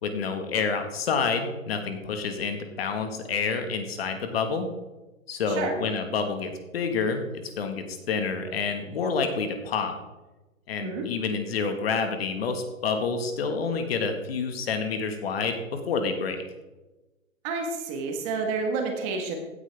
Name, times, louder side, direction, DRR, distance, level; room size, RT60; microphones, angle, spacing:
voice 1, 0.0-4.7 5.3-9.9 10.7-16.4, left 5 dB, 45° left, 6 dB, 1.7 m, -28 dB
voice 2, 17.4-19.4, right 4 dB, 20° right, 3 dB, 1.5 m, -29 dB
16.0 x 9.5 x 3.5 m, 1.1 s
hypercardioid pair, 150°, 41 cm